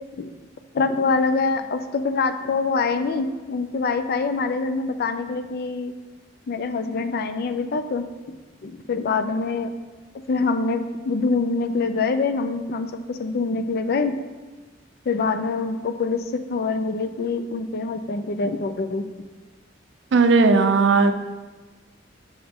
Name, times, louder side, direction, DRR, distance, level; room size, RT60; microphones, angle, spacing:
voice 1, 0.7-5.9 6.5-8.3 8.6-9.7 10.3-14.2 15.1-19.1, left 4 dB, 55° left, 10 dB, 0.4 m, -25 dB
voice 2, 20.1-21.1, right 4 dB, 65° right, 9 dB, 0.4 m, -16 dB
6.3 x 4.9 x 3.6 m, 1.3 s
head